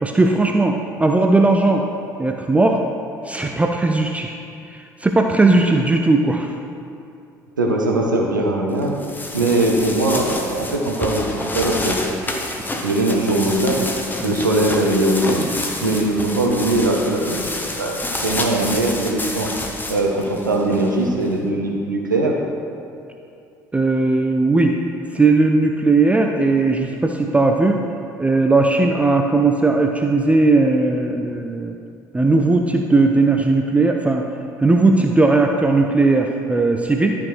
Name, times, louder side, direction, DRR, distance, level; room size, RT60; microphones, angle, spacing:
voice 1, 0.0-1.8 2.2-2.8 3.2-4.4 4.7-6.5 9.4-9.5 14.2-14.3 15.8-15.9 23.7-24.8 25.1-27.8 28.2-31.8 32.1-34.2 34.6-37.2, right 3 dB, 15° right, 3 dB, 0.5 m, -17 dB
voice 2, 7.6-9.0 9.3-12.0 12.8-13.9 14.2-15.5 15.8-19.5 19.9-22.4, right 2 dB, 85° right, 0 dB, 0.8 m, -20 dB
sound 1, 8.8-21.3, left 2 dB, 20° left, 1.0 m, -29 dB
12.0 x 5.1 x 3.3 m, 2.6 s
figure-of-eight pair, 55°, 10 cm